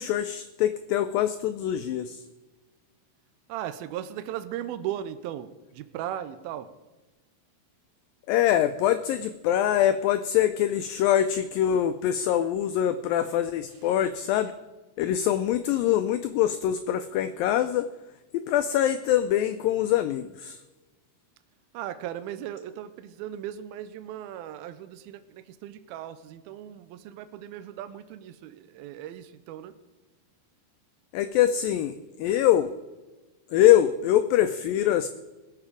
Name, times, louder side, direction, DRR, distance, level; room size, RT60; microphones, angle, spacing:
voice 1, 0.0-2.2 8.3-14.5 15.0-17.9 18.3-20.6 31.1-32.7 33.5-35.1, left 11 dB, 90° left, 10 dB, 2.0 m, -24 dB
voice 2, 3.5-6.7 21.7-29.7, right 11 dB, 80° right, 11 dB, 2.3 m, -37 dB
21.0 x 7.4 x 5.0 m, 1.1 s
omnidirectional pair, 4.7 m